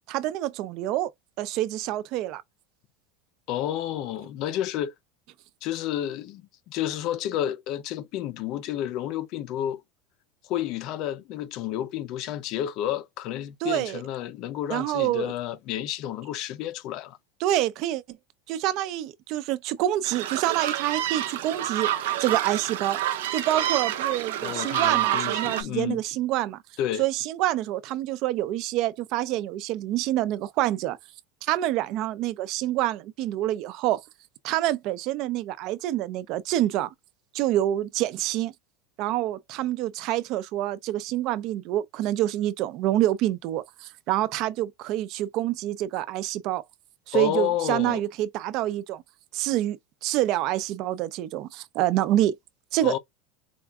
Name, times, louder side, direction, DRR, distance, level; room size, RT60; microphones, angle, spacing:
voice 1, 0.1-1.1 1.4-2.4 13.6-14.0 14.7-15.3 17.4-18.2 18.5-23.0 23.3-26.6 27.0-31.0 31.4-34.0 34.4-36.9 37.3-38.5 39.0-46.6 47.1-49.0 49.3-52.4 52.7-53.0, right 14 dB, 40° right, 0.4 m, -27 dB
voice 2, 3.5-4.9 5.6-9.8 10.4-17.2 24.4-26.0 26.8-27.0 47.1-48.0 52.8-53.0, left 11 dB, 40° left, 0.5 m, -30 dB
sound 1, 20.0-25.6, right 12 dB, 85° right, 0.6 m, -28 dB
4.4 x 2.4 x 3.4 m
supercardioid pair, 175°, 0 cm